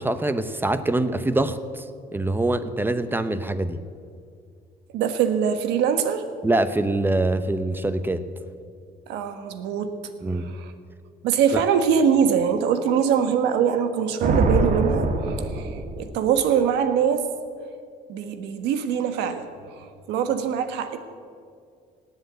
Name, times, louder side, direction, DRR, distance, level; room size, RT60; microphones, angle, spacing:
voice 1, 0.0-1.8 2.1-3.8 6.4-8.2 10.2-10.4 11.5-11.6, right 2 dB, 10° right, 12 dB, 0.8 m, -24 dB
voice 2, 4.9-6.2 9.1-10.0 10.4-10.7 11.2-15.7 16.0-17.3 18.1-19.5 19.8-21.0, right 7 dB, 90° right, 9 dB, 1.3 m, -23 dB
Thunder, 14.2-16.4, right 2 dB, 50° right, 1.5 m, -24 dB
18.0 x 8.1 x 8.1 m, 2.2 s
cardioid pair, 110°, 17 cm